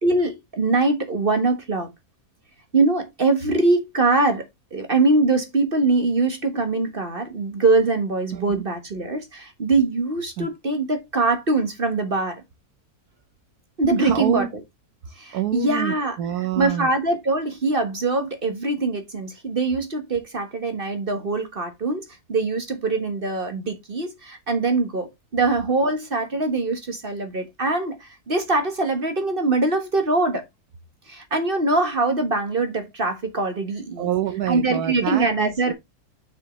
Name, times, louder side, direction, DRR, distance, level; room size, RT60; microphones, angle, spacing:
voice 1, 0.0-1.9 2.7-4.5 4.7-12.4 13.8-14.4 15.2-16.1 16.6-30.4 31.1-34.1 34.5-35.7, right 3 dB, 35° right, 1.5 m, -23 dB
voice 2, 8.3-8.6 10.4-10.5 14.0-14.5 15.3-16.9 34.0-35.7, right 10 dB, 75° right, 1.4 m, -27 dB
7.4 x 6.2 x 3.1 m
omnidirectional pair, 1.7 m